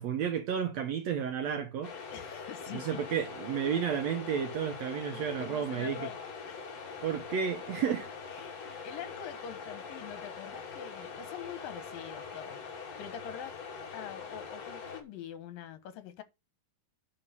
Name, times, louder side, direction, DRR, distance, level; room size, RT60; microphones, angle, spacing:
voice 1, 0.0-1.9 2.7-6.1 7.0-8.1 8.7-8.9, right 8 dB, 70° right, 1.7 m, -32 dB
sound 1, 1.8-15.0, left 5 dB, 50° left, 3.2 m, -43 dB
voice 2, 2.1-3.0 5.1-6.7 8.3-13.6 13.9-16.2, left 8 dB, 80° left, 3.0 m, -45 dB
11.0 x 4.2 x 6.8 m
omnidirectional pair, 4.0 m